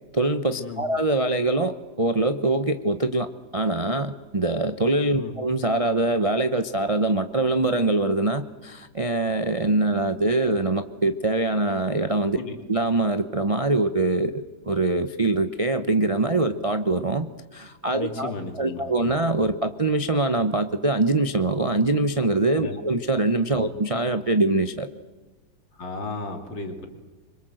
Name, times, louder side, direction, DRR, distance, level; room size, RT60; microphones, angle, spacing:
voice 1, 0.1-3.3 3.5-12.4 12.7-17.3 17.5-24.9, right 2 dB, 40° right, 9 dB, 0.5 m, -23 dB
voice 2, 17.8-18.8 22.6-22.8 23.6-23.7 25.7-26.9, left 3 dB, 70° left, 5 dB, 3.4 m, -34 dB
26.0 x 24.5 x 7.8 m, 1.3 s
omnidirectional pair, 2.1 m